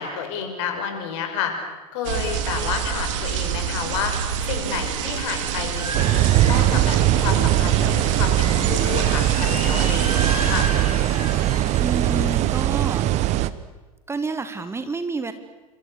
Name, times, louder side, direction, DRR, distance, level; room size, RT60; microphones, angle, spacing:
voice 1, 0.0-1.5 1.9-4.1 4.5-10.7, left 7 dB, 55° left, 5 dB, 6.0 m, -30 dB
sound 1, 2.0-10.7, right 9 dB, 55° right, 3.1 m, -27 dB
sound 2, 5.1-12.4, right 1 dB, 85° right, 4.6 m, -33 dB
sound 3, 5.9-13.5, right 14 dB, 40° right, 1.1 m, -20 dB
voice 2, 11.8-13.0 14.1-15.3, right 4 dB, 15° right, 10 dB, 1.5 m, -29 dB
28.5 x 26.5 x 6.7 m, 1.1 s
figure-of-eight pair, 80°, 19 cm